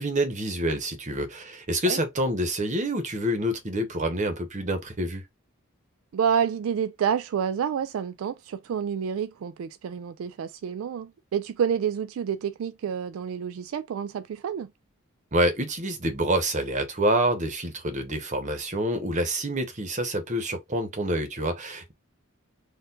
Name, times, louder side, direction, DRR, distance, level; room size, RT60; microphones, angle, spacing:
voice 1, 0.0-5.2 15.3-21.9, right 1 dB, 35° right, 1.0 m, -27 dB
voice 2, 6.1-14.7, right 8 dB, 75° right, 0.3 m, -28 dB
4.5 x 2.5 x 3.8 m
head